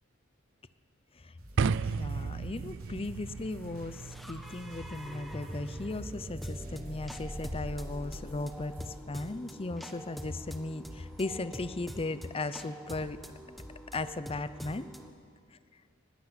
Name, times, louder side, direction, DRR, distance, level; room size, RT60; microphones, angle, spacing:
sound 1, 1.4-9.0, right 1 dB, 85° right, 3.9 m, -53 dB
sound 2, 1.6-7.7, right 5 dB, 60° right, 0.4 m, -36 dB
voice 1, 1.8-13.2 13.9-14.9, left 2 dB, 25° left, 14 dB, 0.7 m, -37 dB
sound 3, 3.3-15.1, equal, ahead, 1.2 m, -44 dB
20.0 x 18.0 x 8.2 m, 2.2 s
head